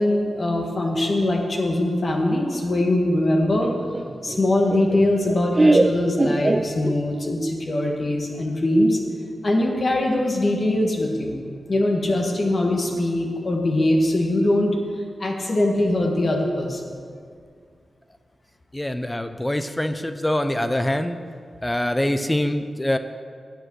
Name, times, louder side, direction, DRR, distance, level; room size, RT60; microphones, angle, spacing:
voice 1, 0.0-3.7 4.2-9.0 9.4-11.4 11.7-14.7 15.2-17.0, left 1 dB, 50° left, 1 dB, 1.8 m, -22 dB
Laughter, 3.6-7.3, right 2 dB, 30° right, 0.6 m, -22 dB
voice 2, 18.7-21.2 21.6-23.0, left 1 dB, 15° left, 9 dB, 0.7 m, -24 dB
10.5 x 7.6 x 6.4 m, 2.1 s
cardioid pair, 55°, 0 cm